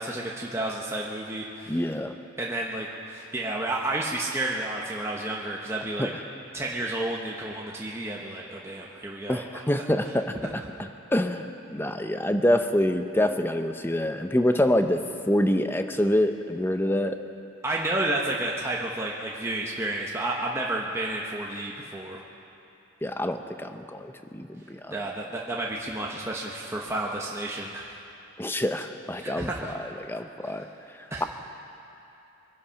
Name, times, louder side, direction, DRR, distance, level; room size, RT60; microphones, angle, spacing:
voice 1, 0.0-1.9 2.4-6.1 6.5-9.5 17.6-22.2 24.9-28.0 29.2-29.8 30.4-30.5 31.1-31.2, right 2 dB, 15° right, -3 dB, 1.0 m, -31 dB
voice 2, 1.7-2.1 6.0-6.1 9.3-17.2 23.0-24.9 28.4-29.5 30.0-30.7, left 1 dB, 10° left, 7 dB, 0.6 m, -26 dB
23.5 x 10.5 x 5.8 m, 2.8 s
head